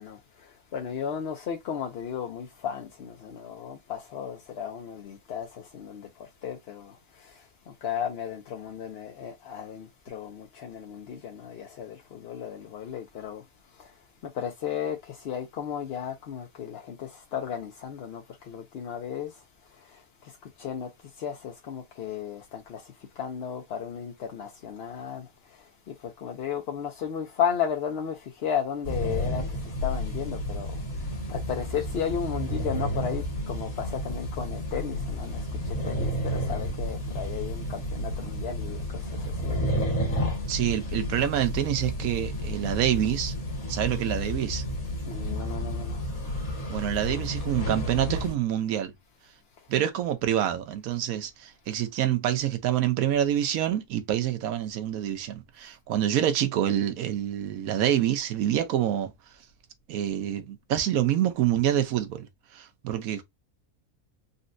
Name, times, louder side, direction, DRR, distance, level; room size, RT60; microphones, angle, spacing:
voice 1, 0.0-7.4 7.8-13.4 13.8-13.9 14.3-19.3 19.8-20.0 20.6-20.9 21.2-25.3 25.9-39.5 45.1-46.0, left 8 dB, 60° left, 0.7 m, -34 dB
sound 1, 28.8-48.3, equal, 80° left, 1.8 m, -31 dB
voice 2, 40.5-43.3 43.7-44.6 46.7-48.9 49.7-59.1 59.9-62.3 62.5-63.2, right 11 dB, 80° right, 1.1 m, -27 dB
4.0 x 2.1 x 2.5 m
omnidirectional pair, 1.5 m